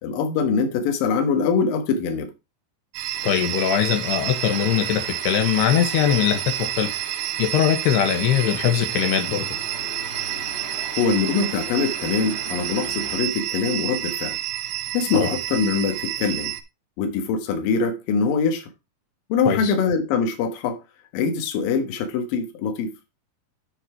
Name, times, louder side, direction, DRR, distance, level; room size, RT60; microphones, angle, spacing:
voice 1, 0.0-2.3 11.0-14.4 14.9-16.5 17.0-18.7 19.3-20.8 21.1-22.9, left 5 dB, 65° left, 3.0 m, -23 dB
sound 1, 2.9-16.6, right 13 dB, 75° right, 2.3 m, -29 dB
sound 2, 3.1-13.2, left 3 dB, 30° left, 1.1 m, -41 dB
voice 2, 3.2-6.9 7.4-9.5 15.1-15.3 19.5-19.7, left 10 dB, 90° left, 3.3 m, -21 dB
9.9 x 4.3 x 4.9 m
omnidirectional pair, 4.6 m